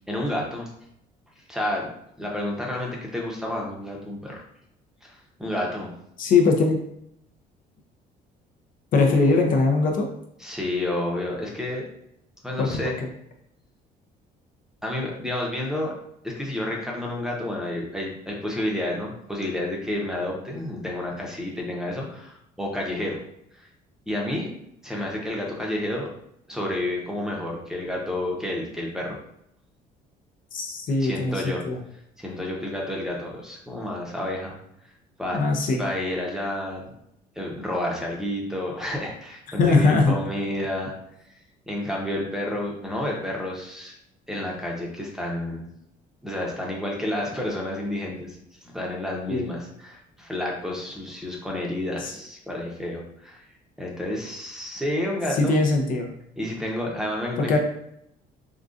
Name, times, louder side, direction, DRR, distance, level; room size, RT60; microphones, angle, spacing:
voice 1, 0.1-0.7 1.5-1.9 2.2-4.4 5.0-5.9 10.4-11.8 12.4-13.0 14.8-15.9 16.2-23.2 24.1-24.5 24.8-26.1 26.5-29.2 31.0-31.6 32.2-34.5 35.2-35.4 35.8-36.9 37.4-40.9 41.7-43.9 44.3-45.7 46.2-48.4 48.6-53.4 53.8-55.6 56.4-57.6, left 1 dB, 5° right, -2 dB, 0.7 m, -30 dB
voice 2, 6.2-6.8 8.9-10.1 12.6-12.9 30.5-31.8 35.3-35.9 39.6-40.1 49.3-49.6 52.0-52.1 55.3-56.1 57.4-57.6, left 3 dB, 55° left, 2 dB, 0.5 m, -21 dB
3.8 x 2.3 x 2.5 m, 0.77 s
cardioid pair, 110°, 17 cm